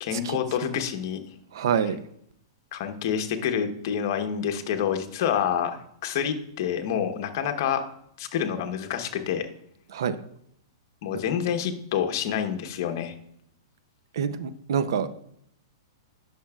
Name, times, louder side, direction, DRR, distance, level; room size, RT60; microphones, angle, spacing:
voice 1, 0.0-1.2 2.7-7.8 8.2-9.5 11.0-13.1, left 8 dB, 50° left, 6 dB, 0.9 m, -28 dB
voice 2, 1.5-2.0 9.9-10.2 14.1-15.1, right 7 dB, 70° right, 12 dB, 0.6 m, -26 dB
10.0 x 5.9 x 2.4 m, 0.72 s
hypercardioid pair, 145°, 2 cm